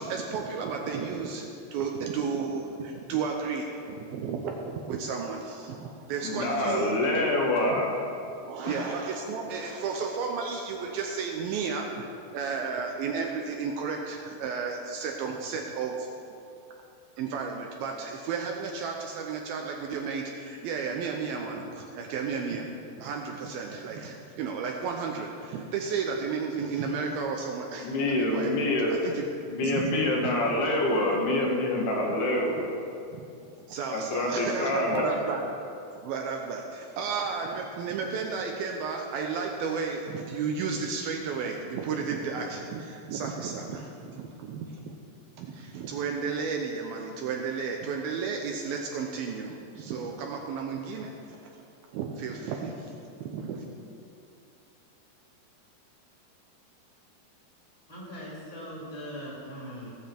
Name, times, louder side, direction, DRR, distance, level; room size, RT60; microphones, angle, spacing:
voice 1, 0.0-7.0 7.6-7.8 8.4-16.1 17.2-22.7 23.0-27.9 28.3-28.5 29.0-30.1 30.4-30.5 33.1-33.3 33.7-35.6 36.0-44.9 45.4-51.1 51.9-52.9 53.2-53.7, right 5 dB, 75° right, 1 dB, 2.3 m, -33 dB
voice 2, 6.2-7.9 8.7-8.8 27.8-29.0 29.5-32.7 33.9-35.1, left 1 dB, 70° left, -1 dB, 3.4 m, -26 dB
voice 3, 57.9-59.9, equal, 35° left, -5 dB, 2.5 m, -40 dB
18.5 x 7.2 x 4.5 m, 2.6 s
omnidirectional pair, 4.8 m